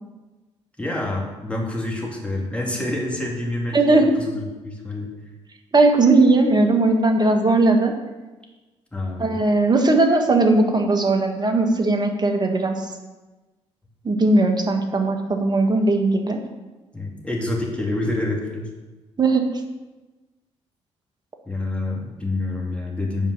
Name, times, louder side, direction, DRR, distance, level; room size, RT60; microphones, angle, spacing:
voice 1, 0.8-5.1 8.9-9.4 16.9-18.7 21.5-23.3, left 2 dB, 10° left, -2 dB, 2.6 m, -27 dB
voice 2, 3.7-4.1 5.7-8.0 9.2-12.8 14.0-16.4 19.2-19.5, right 2 dB, 30° right, 4 dB, 1.4 m, -18 dB
8.1 x 5.2 x 6.2 m, 1.2 s
figure-of-eight pair, 40°, 15 cm